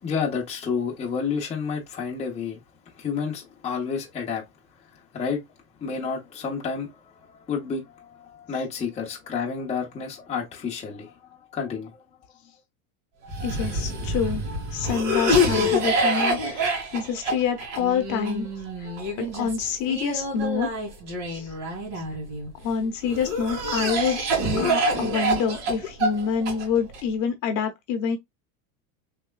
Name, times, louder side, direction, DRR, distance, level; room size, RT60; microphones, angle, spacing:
voice 1, 0.0-4.5 4.7-5.4 5.8-12.0, left 6 dB, 15° left, 0.8 m, -30 dB
Cough, 13.3-22.5 23.1-27.0, equal, 65° right, 2.0 m, -26 dB
voice 2, 13.4-14.4 14.7-18.5 18.8-18.9 19.2-20.7 21.3-21.5 22.6-24.2 24.6-28.2, left 7 dB, 45° left, 0.9 m, -27 dB
3.4 x 3.0 x 2.2 m
supercardioid pair, 140°, 42 cm